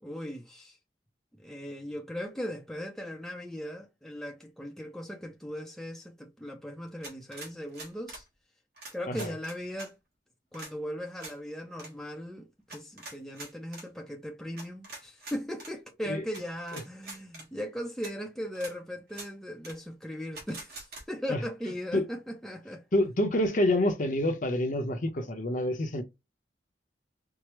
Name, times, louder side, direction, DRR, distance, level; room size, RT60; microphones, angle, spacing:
voice 1, 0.0-0.8 1.4-8.2 8.9-9.9 10.5-20.8 21.1-22.8, equal, 5° left, 0.5 m, -38 dB
sound 1, 7.0-8.3 8.8-9.9 10.5-10.7 11.2-11.4 11.7-11.9 12.7-13.9 14.6-15.7 16.3-16.4 16.7-17.5 18.0-18.1 18.5-18.7 19.1-19.3 19.6-19.8 20.3-21.0, right 2 dB, 60° right, 1.4 m, -44 dB
voice 2, 22.9-26.0, left 1 dB, 45° left, 0.7 m, -27 dB
4.6 x 2.0 x 3.0 m
head